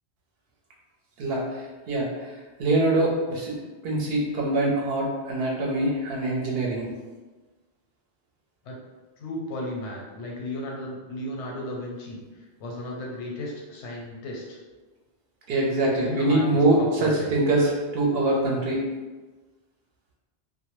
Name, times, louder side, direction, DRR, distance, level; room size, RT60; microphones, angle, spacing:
voice 1, 1.2-2.3 2.6-6.9 15.5-18.9, right 2 dB, 65° right, -3 dB, 0.7 m, -24 dB
voice 2, 9.2-12.2 12.6-14.6 15.9-17.3, left 1 dB, 80° left, -2 dB, 0.9 m, -35 dB
2.1 x 2.0 x 3.0 m, 1.3 s
omnidirectional pair, 1.2 m